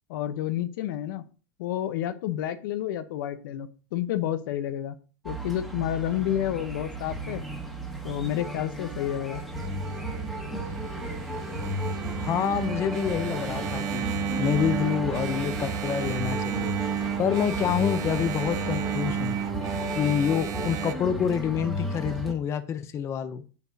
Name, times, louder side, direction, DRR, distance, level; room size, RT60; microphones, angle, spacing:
voice 1, 0.1-1.2 1.6-4.9 5.2-7.4 8.0-9.4, left 11 dB, 70° left, 11 dB, 0.9 m, -30 dB
sound 1, 5.2-22.3, right 1 dB, ahead, 1.6 m, -34 dB
Engine, 9.5-20.9, right 9 dB, 30° right, 0.5 m, -33 dB
voice 2, 12.2-14.0 14.4-16.7 17.2-19.4 19.9-23.4, left 8 dB, 25° left, 10 dB, 0.6 m, -27 dB
8.3 x 7.1 x 2.7 m, 0.37 s
supercardioid pair, 150°, 11 cm